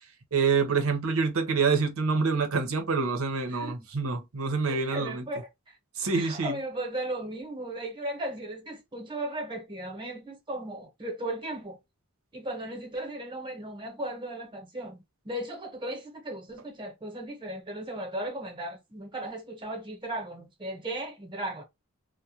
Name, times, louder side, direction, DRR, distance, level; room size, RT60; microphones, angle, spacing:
voice 1, 0.3-5.3 6.0-6.6, right 4 dB, 80° right, 0.7 m, -26 dB
voice 2, 4.6-5.4 5.7-5.8 6.1-11.8 12.3-21.6, right 1 dB, 25° right, 0.9 m, -36 dB
2.3 x 2.1 x 2.8 m
head